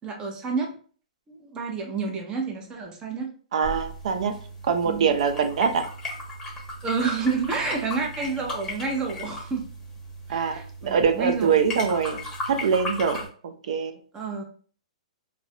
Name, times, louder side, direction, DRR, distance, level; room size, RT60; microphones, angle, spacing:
voice 1, 0.0-0.7 1.3-3.3 4.8-5.1 6.8-9.6 10.3-11.6 14.1-14.4, right 4 dB, 20° right, 1 dB, 0.6 m, -29 dB
voice 2, 3.5-4.3 4.6-5.8 10.3-12.2 12.5-13.2 13.4-14.0, right 6 dB, 65° right, 7 dB, 0.4 m, -23 dB
sound 1, 3.6-13.3, left 1 dB, 15° left, 0.9 m, -36 dB
2.3 x 2.1 x 2.7 m, 0.44 s
hypercardioid pair, 130°, 4 cm